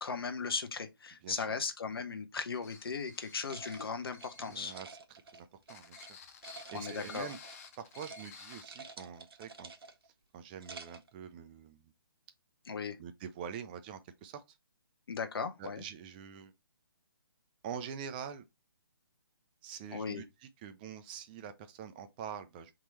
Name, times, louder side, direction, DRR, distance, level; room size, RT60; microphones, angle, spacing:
voice 1, 0.0-4.7 6.7-7.3 12.7-13.0 15.1-15.8 19.9-20.2, left 5 dB, 75° left, 0.9 m, -37 dB
voice 2, 1.2-1.6 4.4-6.2 6.7-7.4 7.8-9.7 10.3-11.9 13.0-14.4 15.6-16.5 17.6-18.4 19.6-22.7, right 7 dB, 25° right, 0.5 m, -45 dB
sound 1, 2.5-4.9 5.6-8.6, left 5 dB, 40° left, 0.7 m, -53 dB
sound 2, 3.5-6.1 6.4-7.7 7.9-8.3 8.5-10.1 10.5-11.1, right 4 dB, 75° right, 0.9 m, -50 dB
3.7 x 3.0 x 4.2 m
hypercardioid pair, 150°, 13 cm